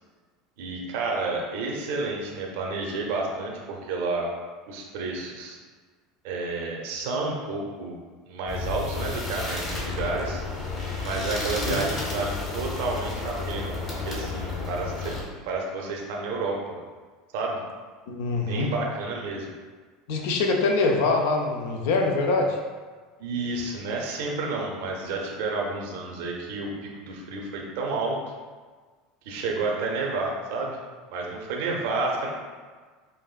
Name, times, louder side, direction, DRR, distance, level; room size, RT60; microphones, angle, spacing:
voice 1, 0.6-4.3 4.7-5.6 6.2-8.0 8.3-10.4 11.0-15.2 15.4-16.8 17.3-17.6 18.3-19.5 23.2-28.2 29.2-30.8 31.1-32.3, right 3 dB, 65° right, -1 dB, 0.6 m, -30 dB
sound 1, 8.5-15.2, left 3 dB, 40° left, 1.3 m, -31 dB
voice 2, 18.1-18.7 20.1-22.6, left 3 dB, 70° left, 2 dB, 0.5 m, -24 dB
5.3 x 2.5 x 2.4 m, 1.5 s
hypercardioid pair, 80°, 0 cm